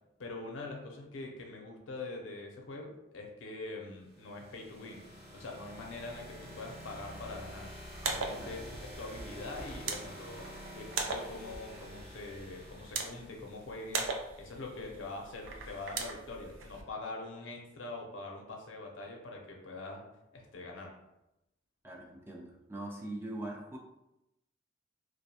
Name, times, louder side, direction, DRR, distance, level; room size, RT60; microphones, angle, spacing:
voice 1, 0.2-5.0 5.3-7.7 8.0-10.5 10.7-14.1 14.3-20.0 20.3-20.9, left 2 dB, 85° left, 1 dB, 0.5 m, -44 dB
sound 1, 4.0-13.8, equal, 60° right, 1.0 m, -48 dB
sound 2, 7.8-16.8, right 4 dB, 80° right, 0.4 m, -40 dB
voice 2, 21.8-23.8, right 1 dB, 10° right, -1 dB, 0.3 m, -42 dB
2.3 x 2.2 x 2.7 m, 0.89 s
head